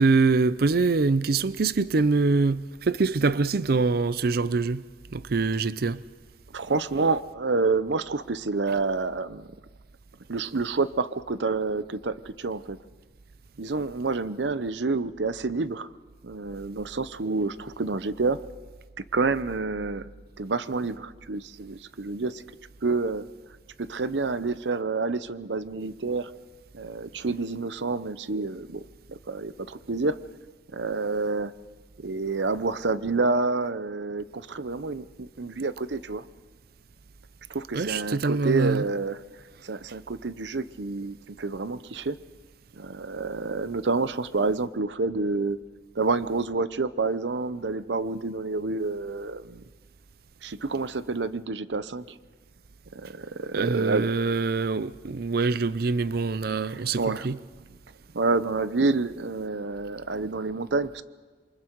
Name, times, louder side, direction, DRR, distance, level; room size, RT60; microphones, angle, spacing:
voice 1, 0.0-4.8 5.1-6.0 37.7-38.8 53.5-57.4 60.1-60.2, right 4 dB, 60° right, 0.5 m, -24 dB
voice 2, 6.5-9.5 10.3-12.8 13.6-15.9 16.2-18.4 19.1-20.1 20.4-22.4 22.8-23.3 23.8-26.3 26.7-30.2 30.7-31.5 32.0-36.3 37.5-39.2 39.6-42.2 42.8-45.6 45.9-49.6 50.4-52.2 52.9-54.1 56.7-57.3 58.1-61.0, right 3 dB, 90° right, 0.8 m, -28 dB
27.5 x 24.0 x 4.6 m
head